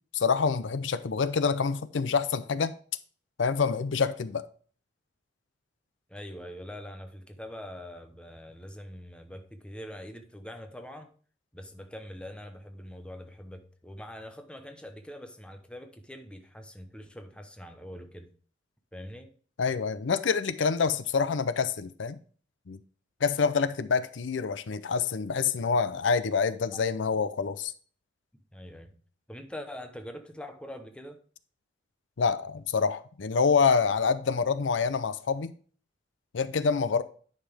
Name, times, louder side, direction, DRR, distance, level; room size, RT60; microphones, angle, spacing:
voice 1, 0.1-2.7 3.4-4.5 19.6-22.2 22.7-22.8 23.2-27.7 32.2-35.5 36.3-37.0, left 5 dB, 75° left, 0.5 m, -26 dB
voice 2, 6.1-11.1 11.5-18.3 18.9-19.3 26.7-26.8 28.5-28.9 29.3-31.2, equal, 5° left, 0.8 m, -43 dB
9.9 x 5.8 x 3.4 m
head